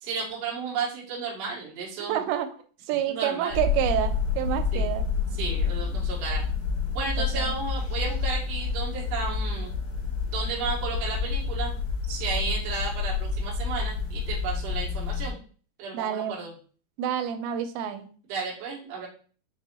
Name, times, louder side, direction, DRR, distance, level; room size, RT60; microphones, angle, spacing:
voice 1, 0.0-2.2 3.1-3.6 4.7-4.9 5.3-6.4 6.9-9.7 10.3-11.8 12.1-15.4 15.8-16.5 18.3-19.1, right 4 dB, 70° right, -4 dB, 1.6 m, -33 dB
voice 2, 2.1-2.5 2.9-5.1 7.0-7.6 15.9-16.4 17.0-18.1, right 10 dB, 85° right, 8 dB, 2.7 m, -28 dB
sound 1, 3.5-15.3, left 5 dB, 60° left, 3.0 m, -29 dB
6.3 x 2.7 x 2.8 m, 0.42 s
omnidirectional pair, 4.9 m